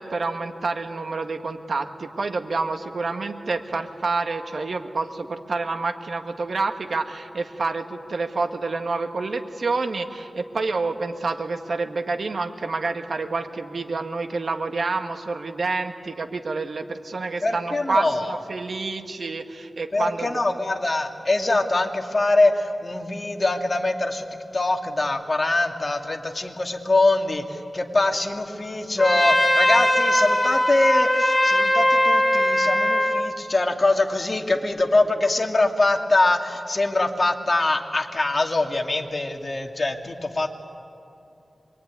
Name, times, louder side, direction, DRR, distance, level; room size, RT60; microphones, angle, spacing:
voice 1, 0.0-20.4, right 3 dB, 70° right, 6 dB, 1.7 m, -28 dB
voice 2, 17.4-18.4 19.9-24.3 24.5-40.5, left 2 dB, 40° left, 4 dB, 2.2 m, -23 dB
Trumpet, 29.0-33.3, left 1 dB, 10° left, 3.5 m, -20 dB
25.0 x 22.5 x 9.6 m, 2.8 s
wide cardioid pair, 70°, 0 cm